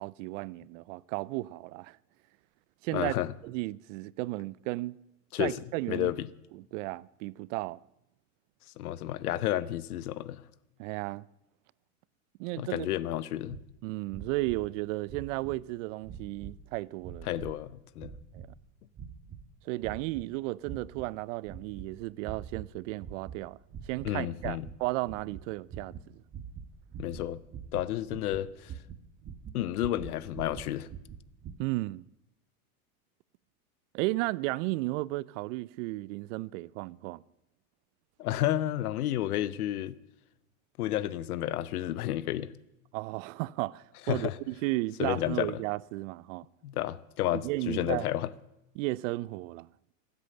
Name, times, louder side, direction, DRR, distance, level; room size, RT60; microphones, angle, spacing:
voice 1, 0.0-2.0 2.8-3.1 3.4-5.0 5.4-6.1 6.5-7.8 10.8-11.3 12.4-12.9 13.8-17.3 18.3-18.5 19.7-23.6 23.8-26.1 31.6-32.1 33.9-37.2 42.9-46.5 47.4-48.0 48.8-49.7, right 20 dB, 60° right, 0.6 m, -34 dB
voice 2, 2.9-3.3 5.3-5.6 5.9-6.3 8.8-10.4 12.6-13.6 17.2-18.1 24.0-24.7 27.0-27.4 27.7-28.7 29.5-30.9 38.2-40.0 40.8-42.5 44.1-44.4 45.0-45.5 46.6-48.3, left 13 dB, 85° left, 0.9 m, -31 dB
sound 1, 13.5-13.6 14.1-14.7 15.0-15.6 16.0-16.6 17.0-17.6 18.0-18.6 18.9-19.4 19.8-20.3 20.6-21.1 21.4-21.9 22.2-22.7 23.0-23.4 23.7-24.1 24.4-31.5, right 7 dB, 30° right, 1.5 m, -44 dB
24.0 x 8.4 x 6.6 m
supercardioid pair, 115°, 43 cm